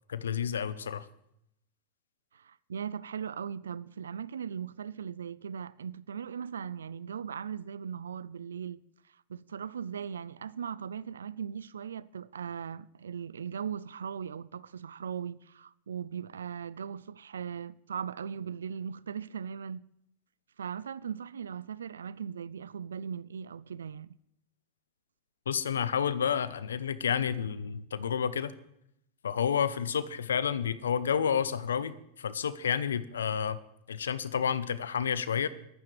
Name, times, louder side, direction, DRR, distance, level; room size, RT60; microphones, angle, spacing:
voice 1, 0.1-1.1 25.5-28.5 29.2-33.6 33.9-35.5, left 7 dB, 85° left, 0.7 m, -30 dB
voice 2, 2.3-8.8 9.3-19.9 20.6-24.1, right 7 dB, 85° right, 0.4 m, -39 dB
21.5 x 9.3 x 3.3 m
hypercardioid pair, 95°, 0 cm